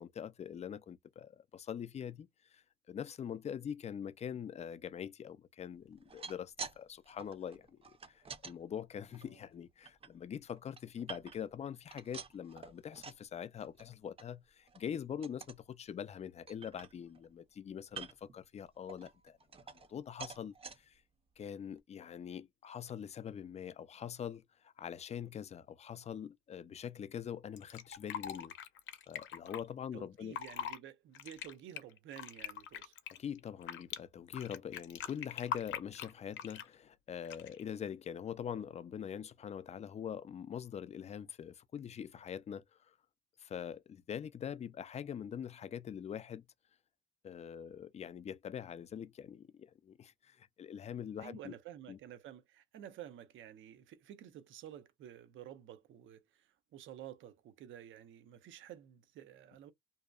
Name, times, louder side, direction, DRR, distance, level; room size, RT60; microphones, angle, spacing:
voice 1, 0.0-19.4 19.7-21.0 21.4-28.5 29.1-30.4 33.1-42.9 43.4-46.4 47.2-51.5 51.9-52.0, left 8 dB, 35° left, 0.3 m, -44 dB
sound 1, 5.9-6.8 7.1-8.5 9.1-10.1 10.5-11.6 11.9-13.3 13.6-13.9 14.2-14.3 14.7-14.9 15.2-15.6 16.1-16.2 16.5-17.3 17.9-18.3 18.9-19.9 20.2-20.8 21.4-21.5 21.8-21.9, right 5 dB, 30° right, 0.5 m, -48 dB
Fill (with liquid), 27.6-29.6 30.2-30.8 31.1-34.0 34.3-36.7 37.2-37.6, left 9 dB, 70° left, 0.6 m, -42 dB
voice 2, 29.9-32.9 51.2-59.7, right 11 dB, 75° right, 0.6 m, -51 dB
2.8 x 2.1 x 2.3 m
cardioid pair, 90°, 20 cm